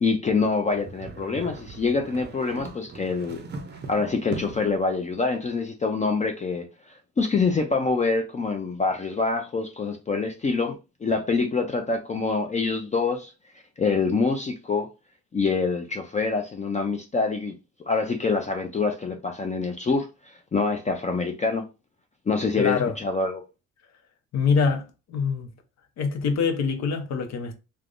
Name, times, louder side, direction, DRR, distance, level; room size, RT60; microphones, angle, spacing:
voice 1, 0.0-3.4 3.9-6.6 7.2-10.8 11.0-13.3 13.8-14.9 15.3-17.5 17.9-21.6 22.3-23.4, left 4 dB, 25° left, 0.4 m, -25 dB
sound 1, 0.7-4.8, right 3 dB, 35° right, 0.5 m, -39 dB
voice 2, 22.6-22.9 24.3-25.5 26.0-27.5, left 5 dB, 60° left, 0.7 m, -24 dB
3.3 x 2.1 x 2.4 m
cardioid pair, 90°, 30 cm